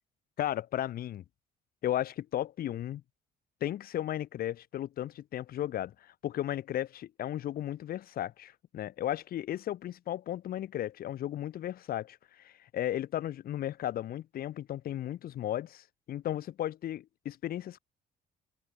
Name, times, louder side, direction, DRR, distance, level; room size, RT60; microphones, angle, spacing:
voice 1, 0.4-1.2 1.8-3.0 3.6-17.8, left 12 dB, 60° left, 2.2 m, -35 dB
cardioid pair, 110°, 17 cm